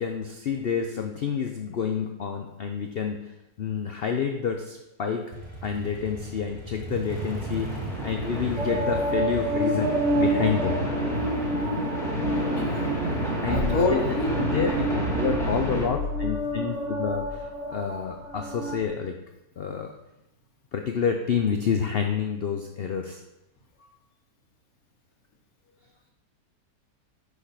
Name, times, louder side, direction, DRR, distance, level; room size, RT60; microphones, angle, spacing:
voice 1, 0.0-3.2 3.6-5.3 5.6-10.8 13.4-14.0 14.4-14.7 15.1-19.2 19.6-19.9 20.7-23.2, left 7 dB, 90° left, 4 dB, 0.5 m, -29 dB
Motorcycle, 5.3-13.0, right 2 dB, 20° right, 0.8 m, -39 dB
sound 1, 7.1-15.9, right 1 dB, ahead, 1.5 m, -30 dB
sound 2, 8.6-18.8, equal, 45° right, 2.0 m, -29 dB
voice 2, 12.4-12.9 13.5-14.5, left 2 dB, 60° left, 1 dB, 1.5 m, -28 dB
6.4 x 5.0 x 5.7 m, 0.93 s
omnidirectional pair, 1.8 m